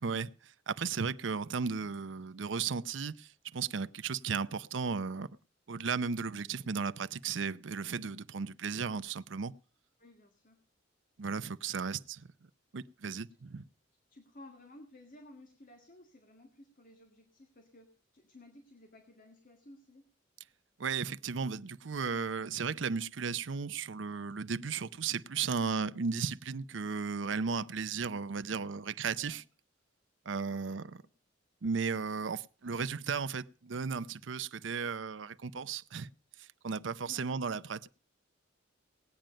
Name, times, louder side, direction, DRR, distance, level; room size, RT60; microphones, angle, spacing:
voice 1, 0.0-5.3 5.7-9.5 11.2-12.3 12.7-13.6 20.8-29.4 30.3-30.9 31.6-36.1 36.4-37.9, right 5 dB, 75° right, 0.6 m, -35 dB
voice 2, 10.0-10.6 11.8-12.0 13.3-13.6 14.1-20.0 29.2-29.4 30.5-31.1 37.1-37.3, left 1 dB, 45° left, 1.9 m, -56 dB
18.5 x 9.1 x 5.2 m
head